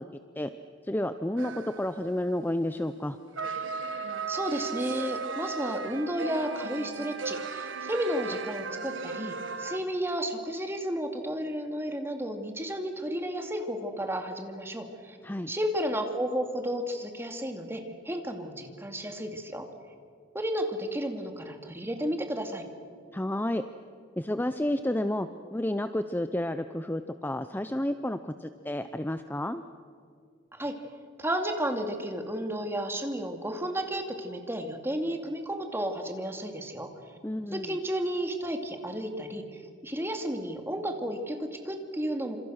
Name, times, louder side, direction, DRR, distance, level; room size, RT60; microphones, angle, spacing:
voice 1, 0.8-3.2 15.2-15.5 23.1-23.6 24.2-29.6 37.2-37.8, left 1 dB, 10° left, 10 dB, 0.6 m, -31 dB
sound 1, 1.4-2.1 3.4-9.8, right 5 dB, 75° right, 1.4 m, -36 dB
voice 2, 4.3-15.2 15.5-19.7 20.3-22.6 30.5-30.8 31.2-36.9 37.5-42.4, equal, 15° right, 4 dB, 2.4 m, -32 dB
28.5 x 27.0 x 6.5 m, 2.2 s
head